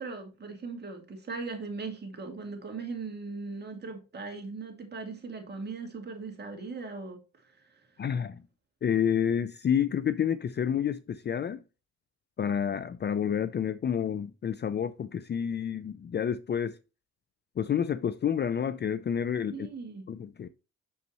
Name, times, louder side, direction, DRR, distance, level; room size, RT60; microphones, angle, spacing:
voice 1, 0.0-7.8 19.5-20.0, right 4 dB, 35° right, 2.3 m, -39 dB
voice 2, 8.0-8.4 8.8-11.6 12.4-16.8 17.6-19.7 20.1-20.5, left 8 dB, 35° left, 0.5 m, -29 dB
6.6 x 5.4 x 2.9 m
cardioid pair, 90°, 30 cm